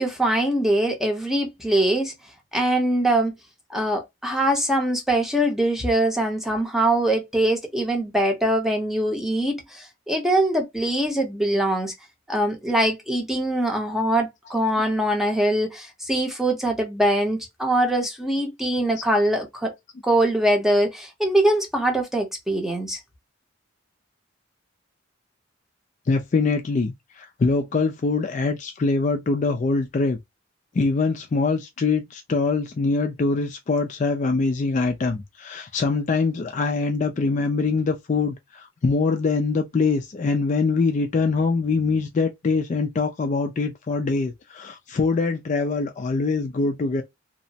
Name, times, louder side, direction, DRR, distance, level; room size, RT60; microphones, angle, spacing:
voice 1, 0.0-2.1 2.5-3.3 3.7-11.9 12.3-19.7 20.0-23.0, right 1 dB, ahead, 0.7 m, -23 dB
voice 2, 26.1-30.2 30.7-47.0, left 4 dB, 35° left, 0.3 m, -23 dB
2.9 x 2.1 x 2.6 m
head